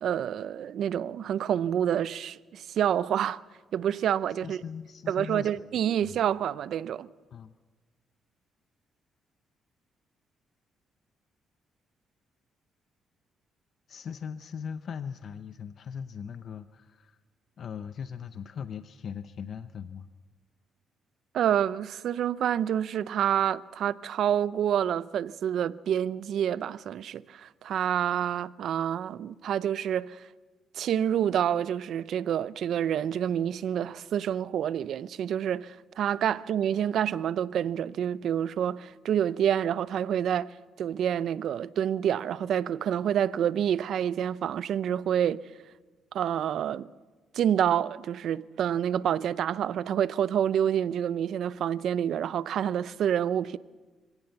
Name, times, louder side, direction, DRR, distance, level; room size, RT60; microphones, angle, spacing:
voice 1, 0.0-3.4 3.7-4.6 5.1-7.1 21.3-30.3 30.7-45.4 46.1-46.9 47.3-53.6, right 9 dB, 70° right, 0.6 m, -28 dB
voice 2, 4.3-5.7 6.0-6.2 7.3-7.6 13.9-17.2 17.6-20.1, left 7 dB, 55° left, 0.8 m, -39 dB
25.0 x 17.0 x 7.0 m
cardioid pair, 90°, 0 cm